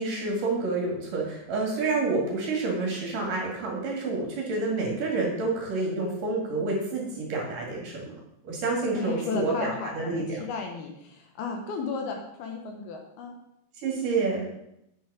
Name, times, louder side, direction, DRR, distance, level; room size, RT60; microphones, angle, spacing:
voice 1, 0.0-8.2 8.4-10.2 13.8-14.5, right 3 dB, 55° right, -1 dB, 3.4 m, -28 dB
voice 2, 8.9-13.3, left 5 dB, 75° left, 3 dB, 2.7 m, -34 dB
9.1 x 6.3 x 6.3 m, 0.80 s
omnidirectional pair, 5.0 m